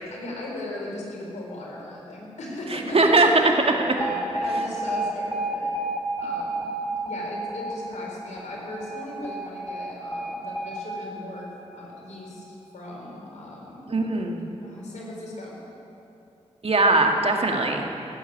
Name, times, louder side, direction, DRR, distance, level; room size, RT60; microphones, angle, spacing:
voice 1, 0.1-3.3 4.0-5.7 6.2-6.7 7.0-12.4 12.7-13.9 14.6-15.6, left 1 dB, 80° left, -3 dB, 4.2 m, -37 dB
voice 2, 2.7-3.3 3.6-4.0 13.9-14.4 16.6-17.8, right 2 dB, 55° right, 2 dB, 2.1 m, -21 dB
Alarm, 4.0-12.1, right 2 dB, 5° right, 3.7 m, -31 dB
17.0 x 8.1 x 9.9 m, 2.9 s
cardioid pair, 45°, 12 cm